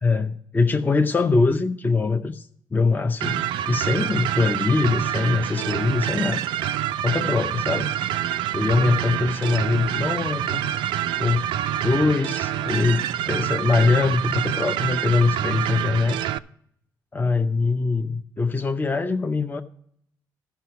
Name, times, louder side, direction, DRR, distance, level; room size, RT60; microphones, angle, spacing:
voice 1, 0.0-3.4 3.7-6.4 7.0-7.9 8.5-10.6 11.2-11.5 11.8-16.3 17.1-19.6, left 4 dB, 25° left, 6 dB, 0.6 m, -22 dB
sound 1, 3.2-16.4, right 11 dB, 80° right, 0.4 m, -26 dB
12.5 x 5.8 x 5.6 m, 0.69 s
supercardioid pair, 70°, 8 cm